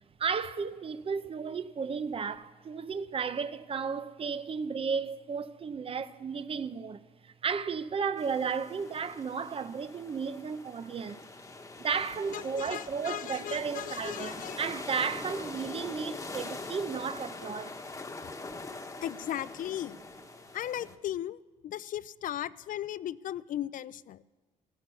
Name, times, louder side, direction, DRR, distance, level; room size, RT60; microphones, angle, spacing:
voice 1, 0.2-11.2 11.8-17.8, right 6 dB, 40° right, 0.7 m, -34 dB
sound 1, 8.2-20.9, left 3 dB, 20° left, 1.2 m, -43 dB
voice 2, 12.3-14.6 19.0-20.0 20.5-24.2, left 11 dB, 65° left, 0.4 m, -37 dB
15.0 x 12.5 x 6.9 m
cardioid pair, 110°, 15 cm